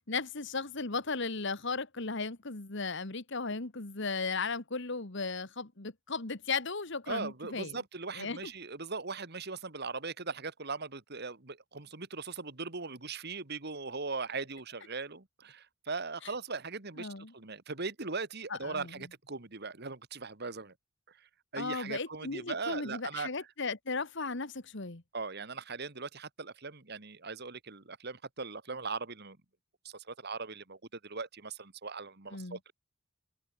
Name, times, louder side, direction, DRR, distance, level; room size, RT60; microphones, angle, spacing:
voice 1, 0.1-7.8 8.2-8.5 17.0-17.3 18.5-19.0 21.6-25.0 32.3-32.6, left 4 dB, 60° left, 1.8 m, -36 dB
voice 2, 7.1-20.7 21.1-23.3 25.1-29.4 29.8-32.7, right 4 dB, 55° right, 2.1 m, -39 dB
head